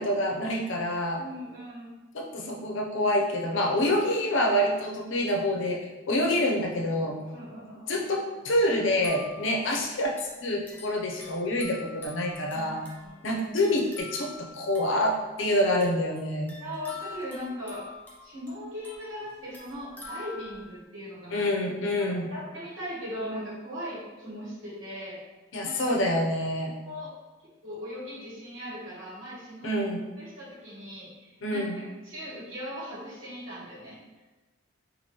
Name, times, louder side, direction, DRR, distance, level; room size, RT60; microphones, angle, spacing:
voice 1, 0.0-1.2 2.1-7.3 7.6-10.2 10.4-12.8 13.2-16.6 21.3-22.3 25.5-26.7 29.6-30.1 31.4-31.8, left 1 dB, 65° left, 0 dB, 0.6 m, -27 dB
voice 2, 1.2-2.0 6.2-6.3 7.3-8.0 12.5-12.7 13.0-13.7 16.6-17.9 18.2-21.5 22.0-25.2 25.6-26.0 26.8-27.1 27.6-29.8 30.2-31.6 32.0-34.0, equal, 70° right, -6 dB, 1.4 m, -39 dB
sound 1, 8.9-20.8, left 3 dB, 10° left, 0.5 m, -47 dB
4.3 x 2.6 x 3.0 m, 1.2 s
head